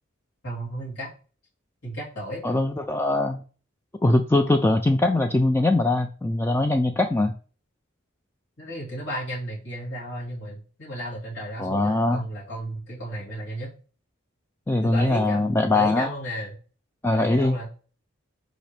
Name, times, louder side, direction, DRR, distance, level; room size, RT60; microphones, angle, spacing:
voice 1, 0.4-1.1 1.8-2.5 8.6-13.7 14.8-16.6 17.1-17.7, equal, 65° left, -7 dB, 3.0 m, -34 dB
voice 2, 2.4-3.4 4.0-7.3 11.6-12.3 14.7-16.1 17.0-17.6, left 2 dB, 10° left, 5 dB, 0.3 m, -22 dB
6.5 x 5.1 x 3.3 m, 0.38 s
head